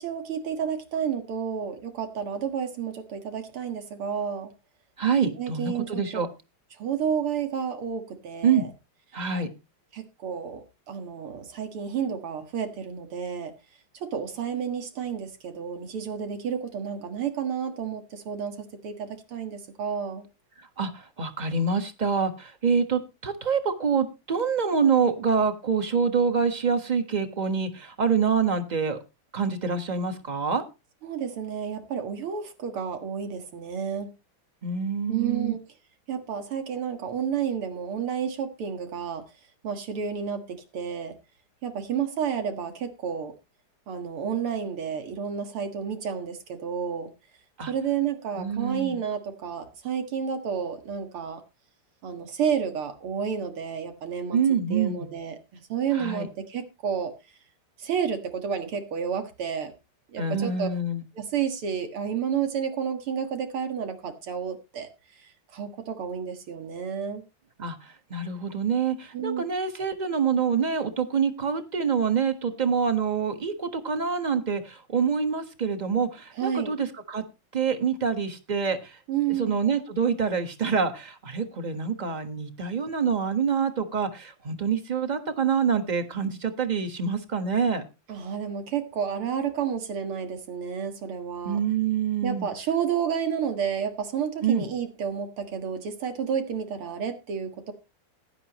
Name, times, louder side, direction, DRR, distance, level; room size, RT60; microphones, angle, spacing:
voice 1, 0.0-4.5 5.4-6.0 6.8-8.7 9.9-13.5 14.0-20.3 31.0-34.1 35.1-35.6 36.1-39.2 39.6-41.2 41.6-43.3 43.9-47.1 47.7-51.4 52.0-54.4 54.7-57.1 57.8-59.7 60.1-60.7 61.2-64.9 65.2-67.2 69.1-69.4 76.4-76.7 79.1-79.6 88.1-91.6 92.2-97.7, right 7 dB, 80° right, 6 dB, 2.5 m, -31 dB
voice 2, 5.0-6.3 8.4-8.6 9.1-9.5 20.8-29.0 29.3-30.6 34.6-35.5 47.6-47.7 48.4-49.0 54.3-55.1 55.9-56.3 60.2-61.0 67.6-67.8 68.1-77.2 77.5-79.0 79.4-87.9 91.4-92.5 94.4-94.7, right 6 dB, 25° right, 8 dB, 1.1 m, -26 dB
16.0 x 11.0 x 3.0 m, 0.27 s
omnidirectional pair, 2.4 m